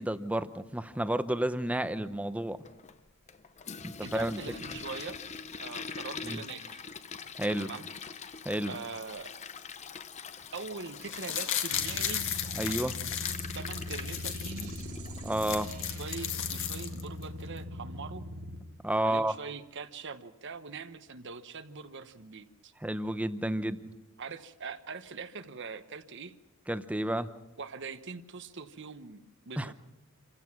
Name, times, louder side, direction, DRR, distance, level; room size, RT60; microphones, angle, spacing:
voice 1, 0.0-2.6 3.8-4.4 6.2-6.4 7.4-7.7 8.4-8.7 12.6-13.0 15.2-15.7 18.8-19.3 22.8-23.9 26.7-27.3 29.6-29.7, right 1 dB, 5° right, 12 dB, 0.7 m, -31 dB
Toilet flush, 2.6-15.3, left 5 dB, 30° left, 0.7 m, -44 dB
voice 2, 4.0-5.2 5.6-6.8 7.6-7.9 8.7-9.3 10.5-12.2 13.5-14.7 16.0-18.2 19.0-22.7 24.2-26.3 27.6-29.7, right 4 dB, 55° right, 10 dB, 1.0 m, -42 dB
sound 1, 11.0-14.7 15.1-15.2 15.3-17.2 17.6-17.7, left 9 dB, 60° left, 1.8 m, -35 dB
sound 2, 11.7-18.6, left 1 dB, 75° right, 2.2 m, -41 dB
27.5 x 15.5 x 6.0 m, 1.0 s
head